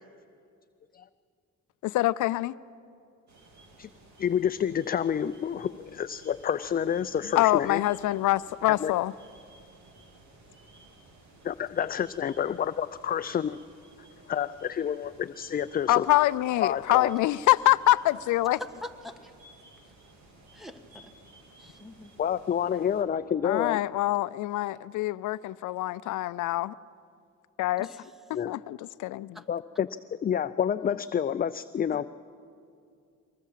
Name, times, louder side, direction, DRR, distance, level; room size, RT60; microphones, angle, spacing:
voice 1, 1.8-2.5 7.4-9.1 15.9-18.6 23.4-26.8 27.6-27.9 28.5-29.4, left 16 dB, 80° left, 17 dB, 0.5 m, -25 dB
sound 1, 3.3-23.0, right 2 dB, 70° right, 3.9 m, -55 dB
voice 2, 4.2-7.8 8.8-8.9 11.4-13.6 14.3-16.1 16.6-17.1 22.2-23.8 28.3-28.6 29.5-29.9 30.2-32.1, left 8 dB, 30° left, 13 dB, 0.4 m, -28 dB
voice 3, 18.5-19.3 20.5-21.1 21.6-22.1 27.8-28.1 29.3-29.4 31.9-32.0, left 1 dB, ahead, 8 dB, 1.5 m, -43 dB
24.0 x 20.0 x 7.5 m, 2.5 s
cardioid pair, 90°, 30 cm